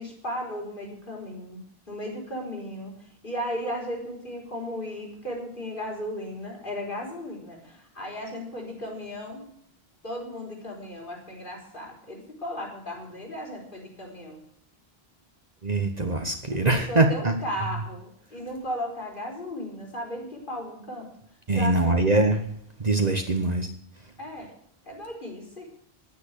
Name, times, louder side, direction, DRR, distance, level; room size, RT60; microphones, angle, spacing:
voice 1, 0.0-1.6 1.9-9.5 10.0-14.4 16.7-21.1 21.5-22.1 24.2-24.5 24.9-25.7, equal, 55° left, -1 dB, 4.6 m, -35 dB
voice 2, 15.6-17.3 21.5-22.4 22.8-23.7, right 2 dB, 40° right, 4 dB, 1.3 m, -23 dB
10.5 x 9.4 x 8.3 m, 0.68 s
omnidirectional pair, 1.0 m